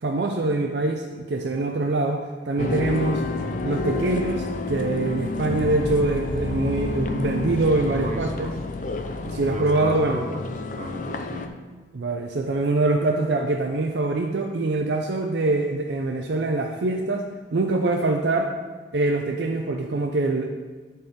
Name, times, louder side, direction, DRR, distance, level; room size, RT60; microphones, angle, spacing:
voice 1, 0.0-3.2 3.6-8.5 9.3-10.2 11.9-18.5 18.9-20.5, right 2 dB, 65° right, 3 dB, 0.5 m, -24 dB
sound 1, 2.6-11.5, left 3 dB, 40° left, 0.5 m, -29 dB
voice 2, 7.9-8.5 9.5-11.5, right 1 dB, 35° right, 2 dB, 0.9 m, -34 dB
11.0 x 4.4 x 3.7 m, 1.3 s
head